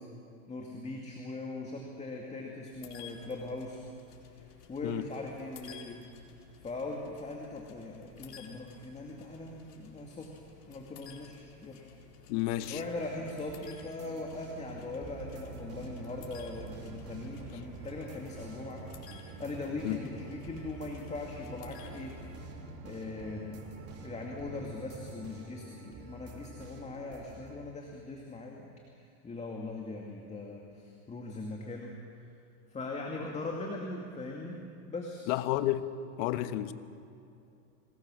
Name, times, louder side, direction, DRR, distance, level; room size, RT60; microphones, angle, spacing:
voice 1, 0.5-3.8 4.3-6.0 6.6-10.4 10.7-11.9 12.7-22.2 22.8-23.6 24.0-28.7 29.0-31.9 32.2-32.3 32.7-34.6 34.9-35.3, left 2 dB, 15° left, 0 dB, 2.3 m, -40 dB
sound 1, 2.7-22.4, left 7 dB, 85° left, 4.3 m, -55 dB
voice 2, 12.3-12.8 19.8-20.0 35.3-35.9 36.2-36.7, left 15 dB, 50° left, 11 dB, 1.3 m, -30 dB
sound 2, 12.6-27.6, right 2 dB, 30° right, 3.5 m, -50 dB
sound 3, 14.6-25.1, right 7 dB, 60° right, 3.4 m, -49 dB
25.5 x 20.0 x 6.4 m, 2.5 s
hypercardioid pair, 125°, 46 cm